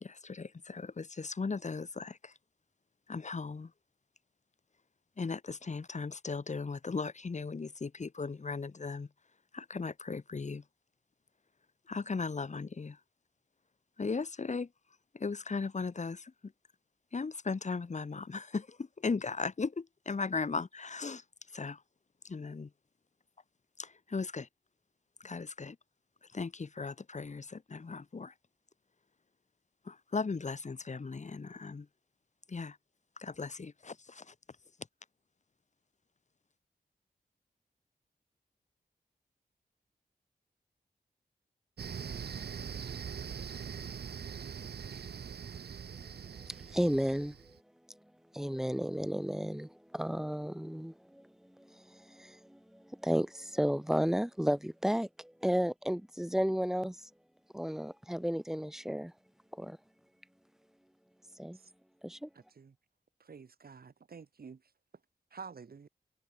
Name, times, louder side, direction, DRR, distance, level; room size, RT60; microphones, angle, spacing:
voice 1, 0.0-2.3 3.1-3.7 5.2-9.1 9.5-10.6 11.9-13.0 14.0-14.7 15.1-16.3 17.1-21.2 21.5-21.8 22.2-22.7 23.8-24.5 25.2-25.8 26.3-28.3 29.9-31.9 32.5-32.8 33.2-34.3, left 4 dB, 45° left, 2.4 m, -37 dB
sound 1, 41.8-47.6, right 7 dB, 85° right, 1.2 m, -42 dB
voice 2, 46.5-47.4 48.3-51.2 51.6-57.0 57.5-59.1 59.5-59.8 61.4-61.6 62.0-62.3, equal, 5° right, 0.6 m, -33 dB
voice 3, 62.3-62.7 63.2-64.6 65.3-65.9, right 5 dB, 70° right, 5.4 m, -49 dB
wide cardioid pair, 105°, 16 cm